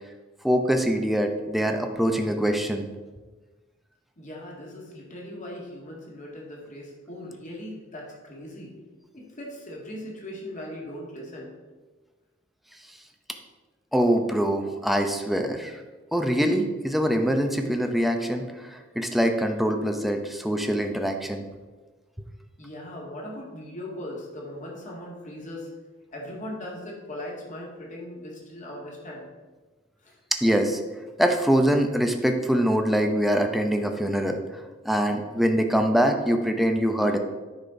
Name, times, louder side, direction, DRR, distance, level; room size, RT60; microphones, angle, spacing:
voice 1, 0.4-2.9 13.9-15.7 16.1-18.4 19.0-21.4 30.4-30.8 31.2-34.4 34.8-37.2, equal, ahead, 4 dB, 0.7 m, -23 dB
voice 2, 4.2-8.8 9.1-11.5 22.6-25.7 26.1-29.3 30.0-30.2, left 1 dB, 40° left, -2 dB, 2.1 m, -39 dB
9.9 x 4.4 x 5.2 m, 1.3 s
head